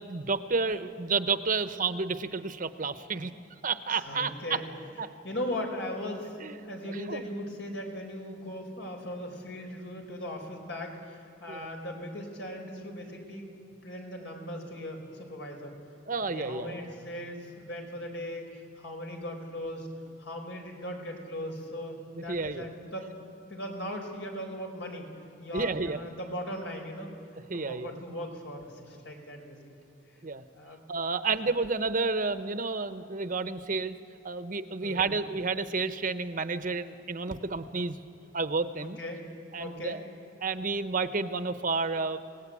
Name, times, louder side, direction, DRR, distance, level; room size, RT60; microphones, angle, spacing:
voice 1, 0.0-3.3 3.6-4.3 5.0-5.1 6.4-6.6 6.9-7.2 11.5-11.7 16.1-16.8 22.2-22.6 25.5-26.0 27.5-27.9 30.2-30.4 30.9-34.0 34.2-38.0 38.3-39.0 39.5-40.0 40.4-42.2, right 4 dB, 45° right, 11 dB, 0.9 m, -31 dB
voice 2, 3.9-4.6 5.2-6.4 6.6-13.4 13.8-15.8 16.3-19.9 20.2-23.1 23.5-25.1 25.4-27.1 27.5-29.6 30.5-30.8 31.3-31.4 34.8-35.1 39.0-39.2 39.6-40.0, left 1 dB, 75° left, 2 dB, 4.5 m, -38 dB
27.0 x 18.5 x 8.6 m, 2.6 s
head